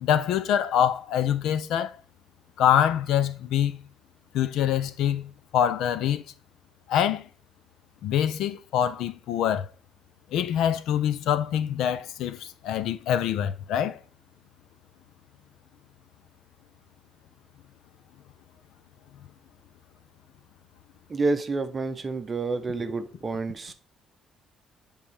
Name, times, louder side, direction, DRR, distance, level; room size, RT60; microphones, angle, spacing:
voice 1, 0.0-1.9 2.6-3.8 4.3-6.2 6.9-7.3 8.0-9.7 10.3-14.0, left 10 dB, 80° left, 0.6 m, -25 dB
voice 2, 21.1-23.7, right 3 dB, 25° right, 0.6 m, -29 dB
7.3 x 3.6 x 4.3 m
cardioid pair, 155°, 0 cm